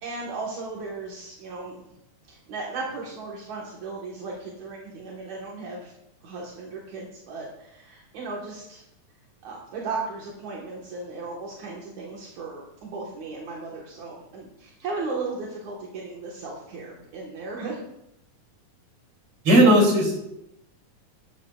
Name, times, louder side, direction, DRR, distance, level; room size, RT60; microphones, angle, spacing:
voice 1, 0.0-1.9 2.3-5.9 6.2-8.8 9.4-17.8, right 3 dB, 70° right, -4 dB, 2.8 m, -36 dB
voice 2, 19.4-20.2, right 1 dB, 45° right, -1 dB, 4.0 m, -16 dB
13.5 x 13.0 x 2.4 m, 0.83 s
omnidirectional pair, 3.5 m